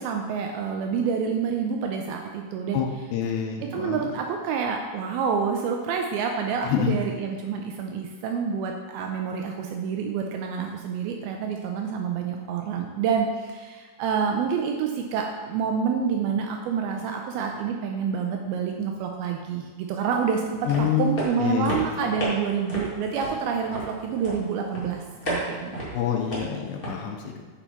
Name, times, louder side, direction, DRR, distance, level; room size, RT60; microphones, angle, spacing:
voice 1, 0.0-2.8 3.6-25.8, right 6 dB, 80° right, 3 dB, 2.3 m, -28 dB
voice 2, 2.7-4.0 6.7-6.9 20.6-21.1 21.4-21.8 25.9-27.4, left 8 dB, 85° left, 2 dB, 3.0 m, -27 dB
sound 1, 20.4-26.9, right 1 dB, 30° left, 1.0 m, -34 dB
7.1 x 6.8 x 4.3 m, 1.5 s
omnidirectional pair, 4.8 m